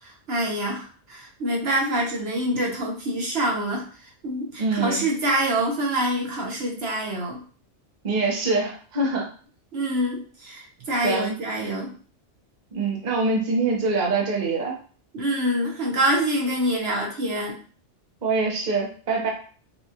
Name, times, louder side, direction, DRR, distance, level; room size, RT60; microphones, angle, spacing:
voice 1, 0.0-3.8 4.2-7.4 9.7-11.9 15.1-17.6, right 1 dB, 60° right, -1 dB, 1.1 m, -26 dB
voice 2, 4.6-5.0 8.0-9.3 11.0-11.3 12.7-14.7 18.2-19.3, right 3 dB, 40° right, -1 dB, 0.9 m, -24 dB
5.5 x 2.4 x 2.8 m, 0.41 s
omnidirectional pair, 1.2 m